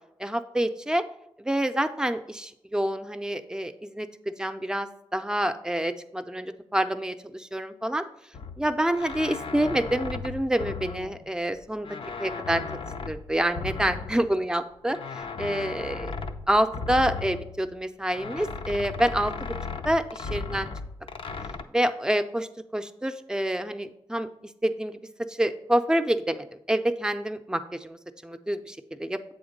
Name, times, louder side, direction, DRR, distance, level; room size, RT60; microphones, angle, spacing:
voice 1, 0.2-1.0 1.4-8.0 8.6-11.9 12.2-12.6 13.1-16.1 16.5-19.3 19.8-20.7 21.7-24.3 24.6-29.2, right 1 dB, 5° right, 8 dB, 0.5 m, -27 dB
sound 1, 8.3-11.6 11.8-14.5 14.9-17.8 18.1-21.6, left 4 dB, 65° left, 0.5 m, -36 dB
7.9 x 3.5 x 5.2 m, 0.79 s
cardioid pair, 45°, 10 cm